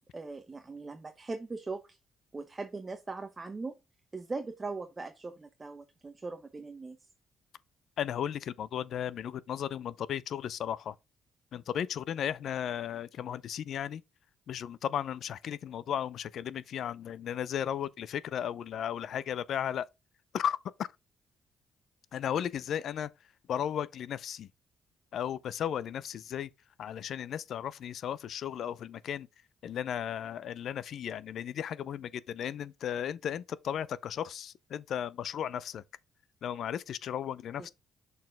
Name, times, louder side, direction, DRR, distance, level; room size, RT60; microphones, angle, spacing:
voice 1, 0.1-2.0 2.3-3.7 4.1-7.0 37.6-37.7, right 3 dB, 25° right, 0.7 m, -40 dB
voice 2, 8.0-10.9 11.5-14.0 14.5-19.9 20.3-20.9 22.1-23.1 23.5-24.5 25.1-26.5 26.8-29.3 29.6-35.8 36.4-37.7, left 9 dB, 65° left, 0.4 m, -35 dB
6.5 x 4.1 x 3.5 m
cardioid pair, 90°, 0 cm